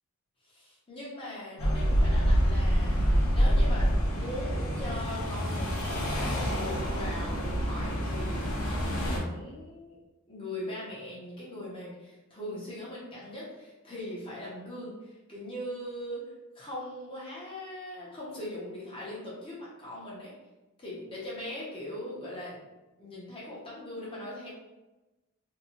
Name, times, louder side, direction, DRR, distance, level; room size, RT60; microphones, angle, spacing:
voice 1, 0.4-10.0 10.3-16.2 16.5-20.3 20.8-22.6 23.0-24.5, left 1 dB, 25° left, -7 dB, 0.7 m, -40 dB
sound 1, 1.6-9.2, equal, 70° left, 0.6 m, -27 dB
2.7 x 2.2 x 2.8 m, 1.1 s
head